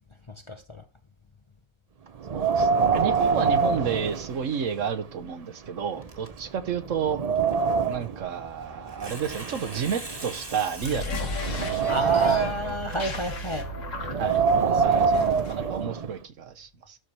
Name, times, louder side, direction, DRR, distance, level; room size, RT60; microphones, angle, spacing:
voice 1, 0.5-0.8 2.4-2.5 11.9-13.7 14.7-15.0, equal, 30° left, 0.7 m, -31 dB
Wind, 2.2-4.8 5.2-5.3 6.0-6.1 6.6-8.2 9.0-10.6 11.1-12.7 14.0-16.1, right 5 dB, 45° right, 0.5 m, -25 dB
voice 2, 2.3-7.2 7.9-11.3 14.2-17.0, right 7 dB, 70° right, 1.3 m, -31 dB
Tearing, 6.0-13.8, right 1 dB, 20° right, 1.6 m, -44 dB
sound 1, 10.7-15.8, left 1 dB, 70° left, 1.9 m, -34 dB
12.5 x 4.5 x 3.3 m
omnidirectional pair, 1.4 m